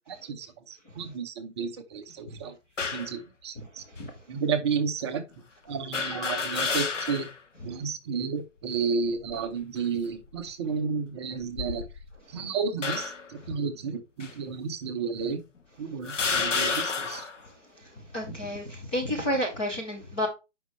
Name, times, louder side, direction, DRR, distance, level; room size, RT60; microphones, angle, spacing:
voice 1, 0.1-2.6 2.9-3.8 4.3-5.2 5.6-7.3 7.6-11.8 12.3-15.4 15.8-17.3, right 5 dB, 20° right, 0.8 m, -32 dB
sound 1, 2.8-3.2 4.0-4.1 5.9-7.4 7.8-7.9 9.0-9.5 10.2-10.4 11.4-12.2 12.8-13.3 14.2-14.3 15.2-15.3 16.0-17.4, left 4 dB, 80° left, 1.7 m, -30 dB
voice 2, 18.1-20.3, equal, 10° left, 0.5 m, -30 dB
9.1 x 5.4 x 3.2 m
hypercardioid pair, 150°, 37 cm